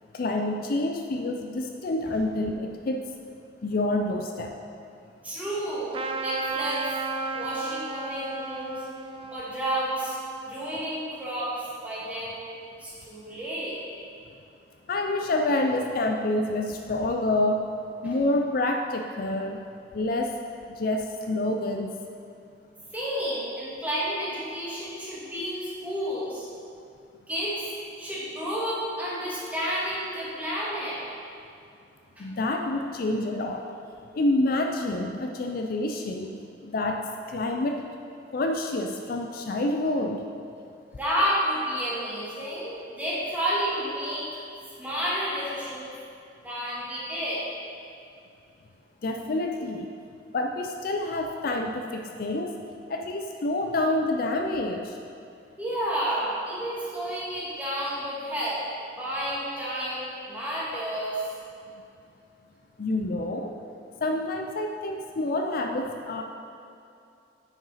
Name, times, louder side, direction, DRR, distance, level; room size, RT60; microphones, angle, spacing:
voice 1, 0.1-3.0 3.6-4.5 14.9-17.7 18.0-19.6 19.9-20.4 20.7-22.0 32.2-33.6 34.1-36.4 36.6-37.9 38.3-40.2 49.0-49.9 50.3-52.6 52.9-55.0 62.8-63.5 64.0-66.2, left 2 dB, 50° left, 3 dB, 0.4 m, -27 dB
voice 2, 5.2-6.9 7.3-8.8 9.3-10.2 10.5-12.4 12.8-13.8 22.9-26.5 27.3-27.7 28.0-31.0 32.2-32.3 41.0-44.3 44.8-45.9 46.4-47.4 55.6-58.6 59.0-61.2, equal, 10° right, -8 dB, 1.9 m, -30 dB
Trumpet, 5.9-11.0, right 4 dB, 30° right, 0.4 m, -34 dB
9.4 x 5.8 x 4.1 m, 2.6 s
head